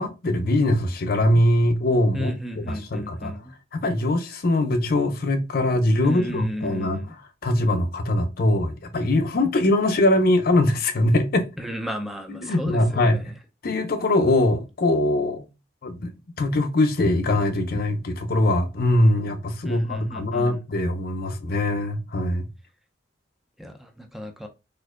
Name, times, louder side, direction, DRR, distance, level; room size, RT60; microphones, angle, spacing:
voice 1, 0.0-3.3 3.7-11.5 12.3-13.2 13.6-15.4 15.8-16.1 16.4-22.5, left 1 dB, 55° left, 0.5 m, -22 dB
voice 2, 2.1-3.5 6.0-7.1 11.6-13.2 19.6-20.6 23.6-24.5, equal, ahead, 0.4 m, -34 dB
4.3 x 2.6 x 2.3 m
head